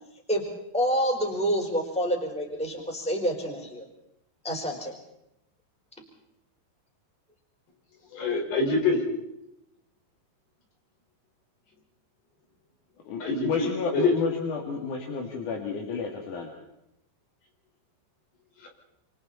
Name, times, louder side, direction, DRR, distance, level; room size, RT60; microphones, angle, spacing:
voice 1, 0.7-3.9 4.4-4.9, equal, ahead, 1 dB, 3.9 m, -27 dB
voice 2, 8.1-9.0 13.2-14.1 18.6-18.7, left 3 dB, 75° left, 0 dB, 7.1 m, -25 dB
voice 3, 13.1-16.5, left 5 dB, 55° left, -1 dB, 3.5 m, -31 dB
28.5 x 27.5 x 4.3 m, 0.82 s
omnidirectional pair, 4.8 m